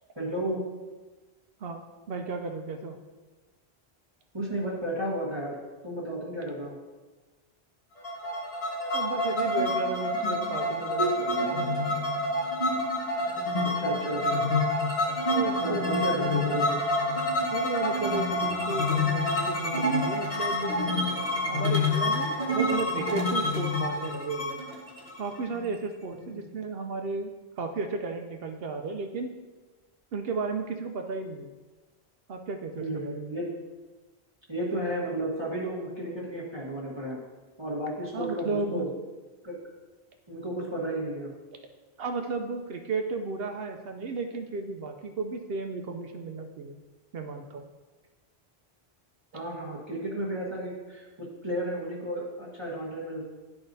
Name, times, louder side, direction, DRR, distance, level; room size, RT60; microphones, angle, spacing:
voice 1, 0.2-0.6 4.3-5.5 5.8-6.7 13.6-14.4 15.6-16.8 26.1-26.5 32.8-33.5 34.5-37.2 37.6-38.8 39.4-39.6 40.3-41.3 49.3-51.1 51.4-53.2, right 1 dB, 25° right, -7 dB, 1.3 m, -33 dB
voice 2, 2.1-3.0 8.9-11.6 15.3-15.9 17.5-20.7 21.5-24.6 25.2-27.3 27.6-29.3 30.1-31.5 32.3-33.2 38.1-38.8 42.0-46.8 47.1-47.7, right 4 dB, 70° right, 4 dB, 0.8 m, -34 dB
sound 1, 8.0-25.7, left 1 dB, 35° left, 1.2 m, -27 dB
11.5 x 4.8 x 2.6 m, 1.3 s
omnidirectional pair, 1.1 m